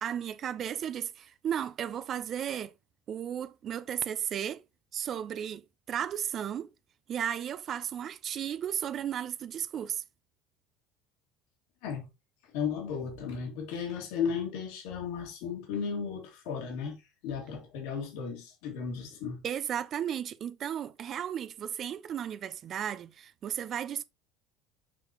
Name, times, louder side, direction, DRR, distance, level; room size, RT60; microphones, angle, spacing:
voice 1, 0.0-2.7 3.1-4.6 4.9-6.7 7.1-10.0 19.4-24.0, right 9 dB, 45° right, 0.6 m, -34 dB
voice 2, 12.5-17.0 17.2-19.4, left 6 dB, 65° left, 1.9 m, -35 dB
7.0 x 4.7 x 2.9 m
hypercardioid pair, 65°, 0 cm